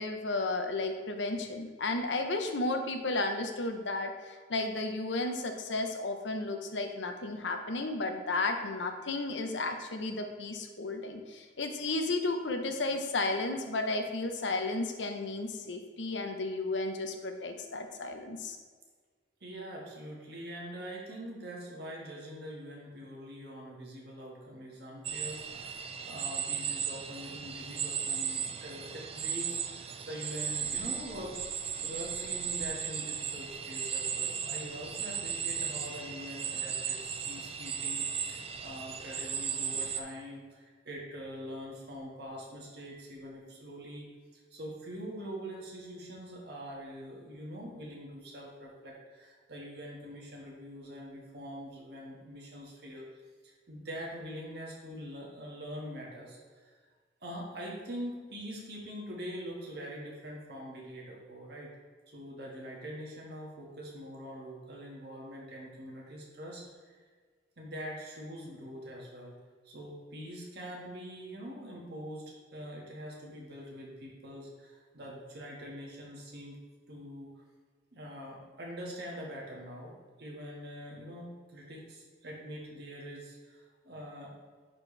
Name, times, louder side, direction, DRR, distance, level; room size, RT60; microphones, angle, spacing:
voice 1, 0.0-18.6, left 2 dB, 80° left, 5 dB, 0.8 m, -33 dB
voice 2, 19.4-31.4 31.8-44.1 44.5-53.1 53.4-56.7 57.2-61.7 62.1-67.0 67.6-69.4 69.6-76.6 76.9-77.4 77.9-84.3, equal, 60° right, -2 dB, 1.8 m, -44 dB
sound 1, 25.0-40.0, right 7 dB, 35° right, 0.5 m, -36 dB
10.5 x 4.5 x 3.3 m, 1.5 s
head